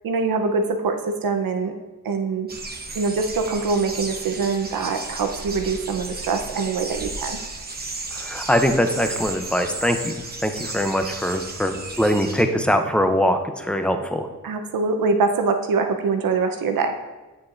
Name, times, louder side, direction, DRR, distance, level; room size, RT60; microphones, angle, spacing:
voice 1, 0.0-1.7 2.0-2.5 2.9-7.4 14.4-17.0, right 4 dB, 85° right, 5 dB, 0.8 m, -24 dB
sound 1, 2.5-12.4, right 3 dB, 30° right, 0.9 m, -34 dB
voice 2, 8.1-10.2 10.4-14.3, equal, 5° left, 6 dB, 0.5 m, -22 dB
8.8 x 7.2 x 2.5 m, 1.2 s
wide cardioid pair, 105°, 34 cm